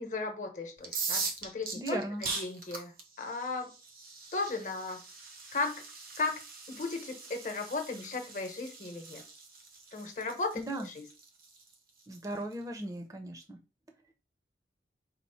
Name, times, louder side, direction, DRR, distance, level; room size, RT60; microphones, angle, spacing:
voice 1, 0.0-2.9 3.2-3.7 4.3-5.0 5.5-5.8 6.2-6.4 6.7-9.2 9.9-11.1, left 3 dB, 45° left, 0.9 m, -36 dB
sound 1, 0.8-12.5, right 4 dB, 55° right, 0.7 m, -41 dB
voice 2, 1.8-2.3 10.6-10.9 12.1-13.6, right 1 dB, 20° right, 0.6 m, -37 dB
4.2 x 2.1 x 4.2 m
head